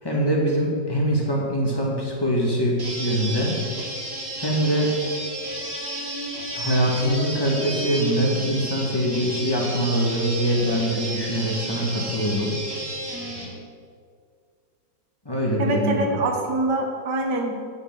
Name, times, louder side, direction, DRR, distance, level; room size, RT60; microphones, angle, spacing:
voice 1, 0.0-3.6 4.4-4.9 6.5-12.6 15.3-16.2, equal, 10° left, -3 dB, 2.2 m, -23 dB
sound 1, 2.8-13.5, right 1 dB, 50° right, 2.7 m, -32 dB
voice 2, 15.6-17.5, right 2 dB, 70° right, 2 dB, 2.0 m, -24 dB
9.7 x 6.9 x 7.5 m, 2.2 s
omnidirectional pair, 2.0 m